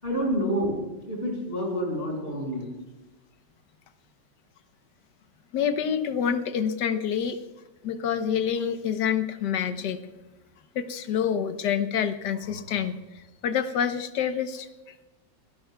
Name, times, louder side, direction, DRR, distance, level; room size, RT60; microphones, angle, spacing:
voice 1, 0.0-0.8 1.1-2.7, equal, 30° left, -1 dB, 6.3 m, -28 dB
voice 2, 5.5-7.4 7.8-10.0 10.7-14.7, left 8 dB, 70° left, 9 dB, 1.5 m, -27 dB
26.0 x 17.5 x 2.3 m, 1.1 s
omnidirectional pair, 2.0 m